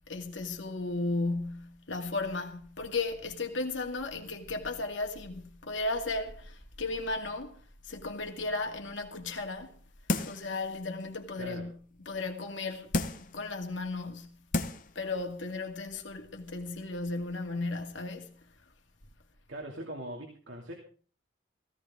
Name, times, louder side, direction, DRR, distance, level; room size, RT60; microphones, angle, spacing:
voice 1, 0.1-7.6 7.8-9.7 10.3-11.8 12.1-12.9 13.2-14.4 14.9-18.4, left 3 dB, 80° left, 2.3 m, -35 dB
sound 1, 10.1-10.5 11.0-11.1 12.9-13.4 14.1-14.2 14.5-14.9 15.3-15.4, left 2 dB, 45° left, 1.0 m, -31 dB
voice 2, 11.4-11.7 19.5-20.7, right 1 dB, 85° right, 2.7 m, -41 dB
16.5 x 16.0 x 3.8 m
head